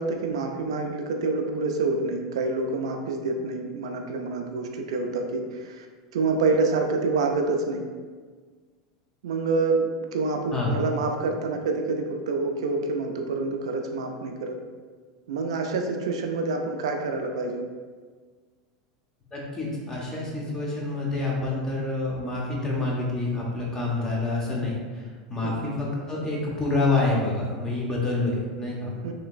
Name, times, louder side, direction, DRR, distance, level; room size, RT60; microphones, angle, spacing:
voice 1, 0.0-5.9 6.1-7.8 9.2-14.6 15.3-17.7 25.4-25.5 29.0-29.1, right 3 dB, 80° right, 4 dB, 0.4 m, -27 dB
voice 2, 19.3-29.0, left 2 dB, 20° left, -4 dB, 0.9 m, -27 dB
3.3 x 2.9 x 2.3 m, 1.5 s
hypercardioid pair, 105°, 3 cm